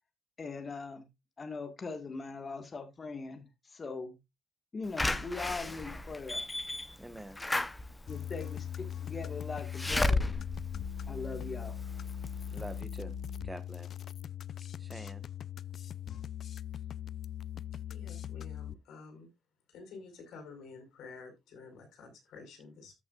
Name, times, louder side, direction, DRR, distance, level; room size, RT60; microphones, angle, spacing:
voice 1, 0.4-1.1 1.4-4.2 4.7-6.5 8.1-10.3 11.1-11.7, left 4 dB, 30° left, 1.5 m, -40 dB
Slam / Alarm, 5.0-11.8 12.3-12.4 12.6-12.7, left 2 dB, 10° left, 0.7 m, -34 dB
voice 2, 7.0-7.4 12.5-13.2 13.4-13.9 14.8-15.2, right 1 dB, 5° right, 1.1 m, -45 dB
sound 1, 8.1-18.7, left 9 dB, 50° left, 0.4 m, -40 dB
voice 3, 17.9-19.3 19.7-22.9, left 4 dB, 90° left, 4.7 m, -50 dB
13.5 x 6.0 x 2.3 m
cardioid pair, 150°, 0 cm